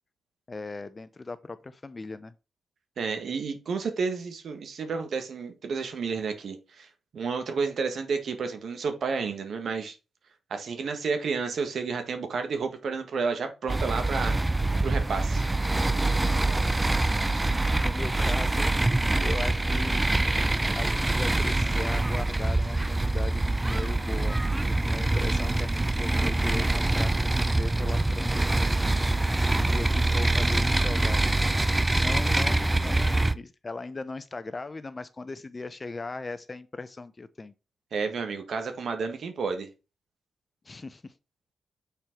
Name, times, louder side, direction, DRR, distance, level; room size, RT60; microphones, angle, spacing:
voice 1, 0.5-2.3 17.3-20.1 20.7-24.4 24.6-28.5 29.5-31.3 31.9-37.5 40.6-41.1, left 3 dB, 35° left, 0.8 m, -38 dB
voice 2, 3.0-6.9 7.1-9.9 10.5-14.4 14.8-15.5 37.9-39.7, right 5 dB, 70° right, 1.7 m, -31 dB
sound 1, 13.7-33.3, right 2 dB, 15° right, 0.6 m, -25 dB
6.8 x 4.5 x 4.6 m
cardioid pair, 65°, 0 cm